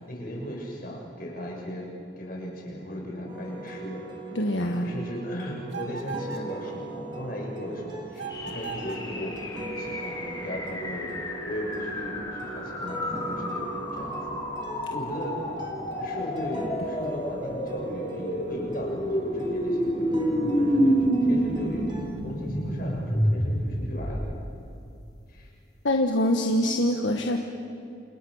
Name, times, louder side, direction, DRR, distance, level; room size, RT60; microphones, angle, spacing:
voice 1, 0.1-1.9 2.2-4.4 4.7-11.1 11.4-14.3 14.8-15.4 16.0-20.1 20.4-21.9 22.2-24.3 25.3-25.5, equal, 45° left, -1 dB, 6.6 m, -36 dB
sound 1, 3.3-22.2, right 2 dB, 25° right, 3.6 m, -40 dB
voice 2, 4.3-4.9 25.8-27.4, left 1 dB, 70° left, 3 dB, 1.5 m, -24 dB
sound 2, 5.7-6.5 8.1-9.1, right 5 dB, 65° right, 2.5 m, -38 dB
sound 3, 8.3-24.6, equal, 20° left, 3.6 m, -29 dB
29.5 x 28.0 x 6.5 m, 2.6 s
head